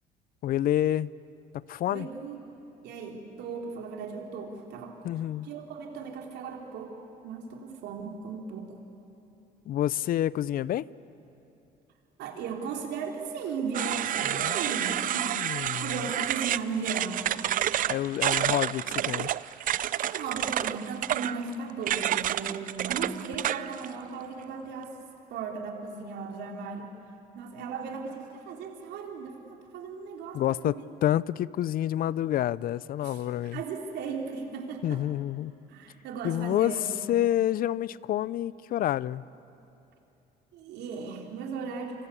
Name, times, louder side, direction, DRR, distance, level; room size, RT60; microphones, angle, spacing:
voice 1, 0.4-1.1 1.7-2.1 5.0-5.5 9.7-10.9 14.2-16.0 17.9-19.3 30.3-30.7 31.0-33.6 34.8-35.5 36.2-36.8 37.1-39.2, left 12 dB, 60° left, 21 dB, 0.5 m, -28 dB
voice 2, 1.9-2.5 2.8-5.0 5.4-8.7 12.2-17.3 20.0-24.9 25.3-26.9 27.4-30.8 33.0-33.2 33.5-35.0 35.7-37.0 40.5-42.1, right 5 dB, 80° right, 2 dB, 3.6 m, -37 dB
sound 1, 13.7-23.9, right 11 dB, 55° right, 0.6 m, -29 dB
27.0 x 25.5 x 8.4 m, 2.8 s
cardioid pair, 110°, 17 cm